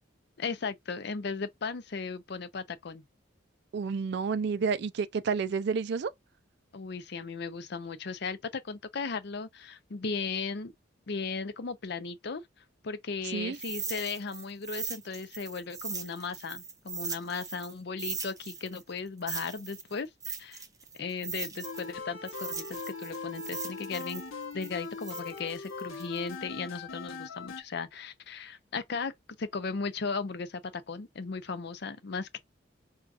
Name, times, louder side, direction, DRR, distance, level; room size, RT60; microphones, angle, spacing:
voice 1, 0.4-3.0 6.7-10.7 11.1-12.4 12.8-20.6 21.0-24.2 24.5-29.1 29.4-32.4, left 4 dB, 55° left, 0.5 m, -36 dB
voice 2, 3.7-6.1 13.3-13.6, right 5 dB, 55° right, 0.3 m, -30 dB
sound 1, 13.5-17.7 18.0-21.9 22.2-26.3, right 5 dB, 15° right, 0.6 m, -39 dB
sound 2, 21.6-27.6, left 4 dB, 90° left, 0.9 m, -40 dB
4.7 x 2.3 x 2.5 m
head